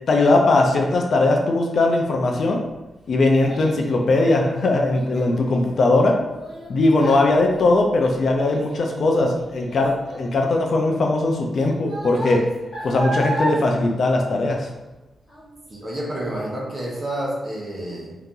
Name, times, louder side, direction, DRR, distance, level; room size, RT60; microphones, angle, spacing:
voice 1, 0.1-2.6 3.1-6.1 6.7-12.4 12.8-14.7, left 2 dB, 50° left, 2 dB, 0.5 m, -19 dB
Child speech kid speaking, 2.7-14.9 15.3-15.7 16.2-16.3, right 1 dB, 20° left, 1.5 m, -34 dB
voice 2, 15.7-18.2, right 1 dB, 25° right, -4 dB, 0.9 m, -29 dB
3.7 x 2.8 x 3.7 m, 1.1 s
wide cardioid pair, 165°, 0 cm